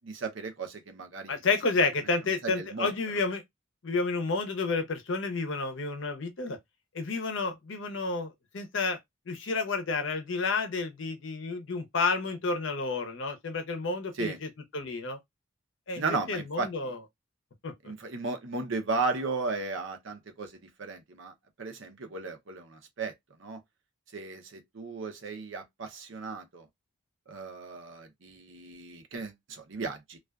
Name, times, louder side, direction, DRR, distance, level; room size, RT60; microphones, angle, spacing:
voice 1, 0.0-1.4 2.4-2.9 14.2-14.4 16.0-16.7 17.8-21.3 21.6-23.1 23.4-23.6 24.1-26.6 27.3-30.2, right 4 dB, 65° right, 0.6 m, -35 dB
voice 2, 1.3-3.4 3.8-6.6 6.9-9.0 9.3-15.2 15.9-17.0 17.6-17.7, left 3 dB, 60° left, 0.6 m, -30 dB
2.4 x 2.3 x 2.2 m
head